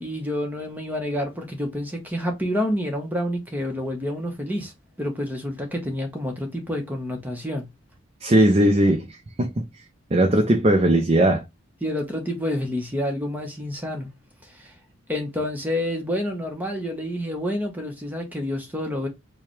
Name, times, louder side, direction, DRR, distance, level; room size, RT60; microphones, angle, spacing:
voice 1, 0.0-4.7 5.0-7.7 11.8-14.1 14.5-14.7 15.1-19.1, left 1 dB, 10° right, 0.9 m, -28 dB
voice 2, 8.2-9.1 9.4-9.7 10.1-11.4, right 1 dB, 30° right, 0.5 m, -18 dB
4.7 x 2.3 x 3.1 m
head